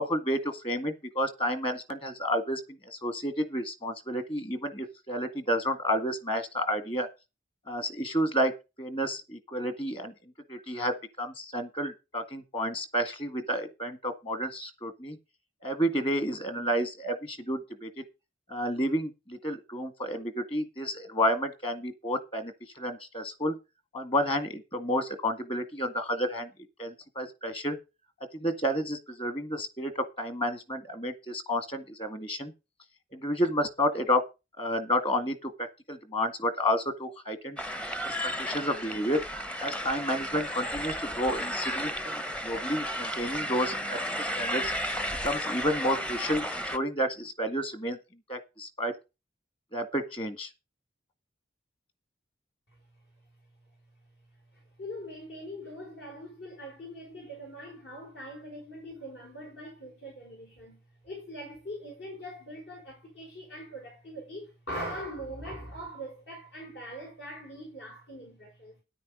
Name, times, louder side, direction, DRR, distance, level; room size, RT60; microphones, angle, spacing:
voice 1, 0.0-7.1 7.7-8.5 8.8-10.1 10.5-15.2 15.6-18.0 18.5-23.5 23.9-26.5 26.8-27.8 28.4-32.5 33.1-34.2 34.6-37.6 38.0-38.1 38.4-39.2 39.6-44.7 45.2-48.0 48.3-49.0 49.7-50.5, equal, 30° left, 1.9 m, -30 dB
sound 1, 37.6-46.8, equal, 5° left, 0.7 m, -33 dB
voice 2, 54.5-68.8, equal, 70° left, 4.8 m, -42 dB
10.0 x 9.3 x 5.2 m
head